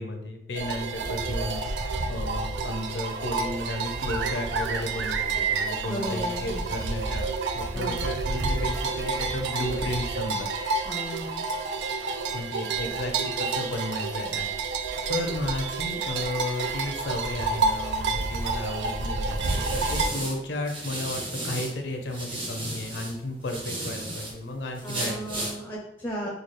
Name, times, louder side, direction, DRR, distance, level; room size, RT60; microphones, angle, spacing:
voice 1, 0.0-7.3 7.5-10.5 12.3-14.5 15.1-25.2 25.5-25.6 26.2-26.3, left 1 dB, 80° left, 3 dB, 0.6 m, -33 dB
sound 1, 0.5-20.1, right 4 dB, 80° right, 0.4 m, -29 dB
voice 2, 5.8-6.7 7.7-8.1 10.9-11.5 24.8-26.3, equal, 10° left, -2 dB, 0.5 m, -35 dB
sound 2, 18.5-21.7 22.1-24.3 24.7-25.5, right 1 dB, 30° right, 0.7 m, -34 dB
3.9 x 2.4 x 3.1 m, 0.84 s
head